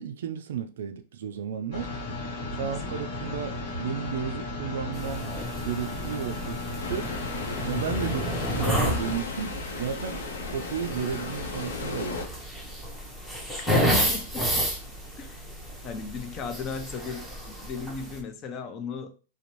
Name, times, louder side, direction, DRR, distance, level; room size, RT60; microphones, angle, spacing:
voice 1, 0.0-1.9 2.6-5.3 5.6-7.1 7.7-8.2 8.5-10.2 10.5-12.2, right 8 dB, 75° right, 0.3 m, -33 dB
sound 1, 1.7-9.2, left 2 dB, 55° left, 1.0 m, -35 dB
voice 2, 2.6-2.9 7.0-7.1 8.0-8.3 13.6-14.7 15.2-15.5 15.8-19.2, left 5 dB, 35° left, 0.5 m, -37 dB
sound 2, 4.9-18.2, equal, ahead, 0.7 m, -31 dB
sound 3, 6.8-12.3, left 3 dB, 80° left, 0.6 m, -35 dB
2.5 x 2.0 x 3.0 m
hypercardioid pair, 120°, 0 cm